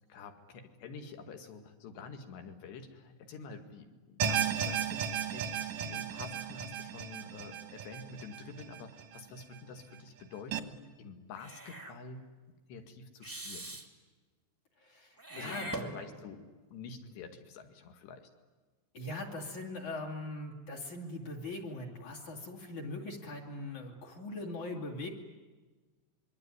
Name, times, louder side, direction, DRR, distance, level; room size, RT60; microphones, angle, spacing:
voice 1, 0.1-12.2 12.7-13.8 15.4-18.3, left 4 dB, 70° left, 6 dB, 4.2 m, -48 dB
sound 1, 4.2-9.4 9.8-9.9 10.5-10.6, right 8 dB, 65° right, 1.8 m, -35 dB
Meow / Hiss, 11.3-12.0 13.2-13.9 15.2-16.4, right 1 dB, 15° right, 0.7 m, -42 dB
voice 2, 14.8-15.7 18.9-25.1, left 2 dB, 45° left, 4 dB, 3.7 m, -41 dB
26.5 x 23.0 x 9.7 m, 1.3 s
omnidirectional pair, 5.3 m